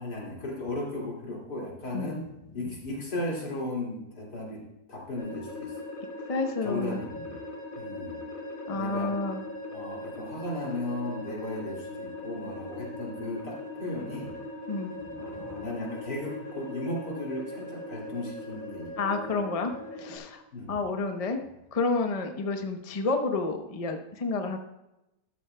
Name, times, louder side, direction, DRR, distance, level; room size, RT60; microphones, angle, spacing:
voice 1, 0.0-2.2 2.5-4.6 4.9-5.7 6.6-7.1 7.8-8.2 8.7-9.1 9.7-14.3 15.1-18.9 20.5-20.8, left 1 dB, 75° left, -2 dB, 3.0 m, -35 dB
sound 1, 5.2-20.2, left 1 dB, 55° left, 2.7 m, -40 dB
voice 2, 6.3-7.0 8.7-9.4 14.7-14.9 15.3-15.5 19.0-20.4 20.7-21.4 21.7-24.6, left 3 dB, 35° left, 5 dB, 0.6 m, -30 dB
13.0 x 12.5 x 2.2 m, 0.91 s
omnidirectional pair, 1.8 m